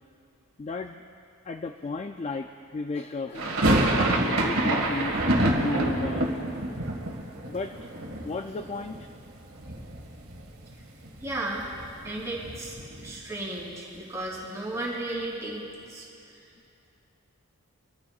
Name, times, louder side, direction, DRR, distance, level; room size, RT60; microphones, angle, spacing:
voice 1, 0.6-1.0 1.5-3.5 4.3-6.3 7.5-7.7 8.2-9.0, left 3 dB, 30° left, 6 dB, 0.3 m, -34 dB
sound 1, 3.3-9.3 9.6-10.4 10.7-10.8 11.0-13.2, right 1 dB, 75° right, 1.8 m, -27 dB
voice 2, 11.2-11.6 12.0-15.6 15.9-16.0, right 2 dB, 15° right, -5 dB, 3.2 m, -34 dB
24.0 x 14.0 x 2.4 m, 2.6 s
head